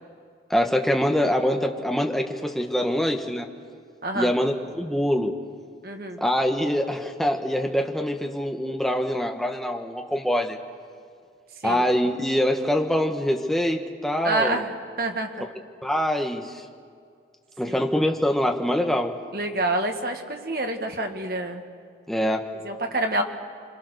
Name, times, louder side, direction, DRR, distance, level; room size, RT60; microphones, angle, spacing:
voice 1, 0.5-3.5 4.1-5.4 6.2-10.6 11.6-14.7 15.8-16.6 17.6-19.2 22.1-22.5, equal, ahead, 3 dB, 1.4 m, -24 dB
voice 2, 5.8-6.2 11.6-11.8 14.2-14.7 15.0-15.5 17.7-17.9 19.3-21.6 22.6-23.2, right 2 dB, 55° right, 4 dB, 2.0 m, -27 dB
26.5 x 26.0 x 6.7 m, 2.2 s
head